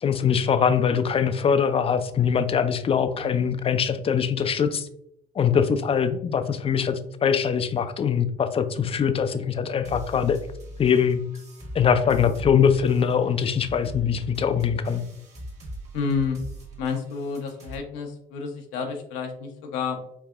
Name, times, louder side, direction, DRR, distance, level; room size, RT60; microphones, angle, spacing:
voice 1, 0.0-4.9 5.4-10.4 10.8-11.2 11.7-15.0, left 7 dB, 30° left, 10 dB, 0.4 m, -22 dB
voice 2, 3.2-3.6 15.9-16.4 16.8-20.0, left 5 dB, 80° left, 3 dB, 0.9 m, -30 dB
sound 1, 9.8-17.8, equal, 35° right, 1.3 m, -40 dB
4.7 x 2.7 x 2.4 m, 0.73 s
supercardioid pair, 80°, 19 cm